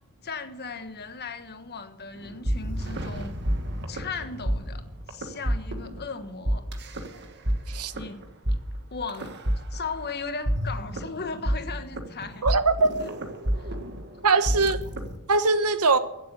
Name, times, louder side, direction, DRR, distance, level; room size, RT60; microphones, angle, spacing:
voice 1, 0.2-3.4 3.9-4.8 5.1-6.6 7.9-8.2 8.9-9.3 9.7-12.5 13.0-13.1 13.6-13.7 14.5-14.7, left 4 dB, 50° left, 1.4 m, -37 dB
sound 1, 2.1-15.2, equal, 50° right, 1.8 m, -29 dB
voice 2, 12.4-12.9 14.2-14.8 15.3-16.0, right 3 dB, 85° right, 1.2 m, -21 dB
16.5 x 7.8 x 8.2 m
head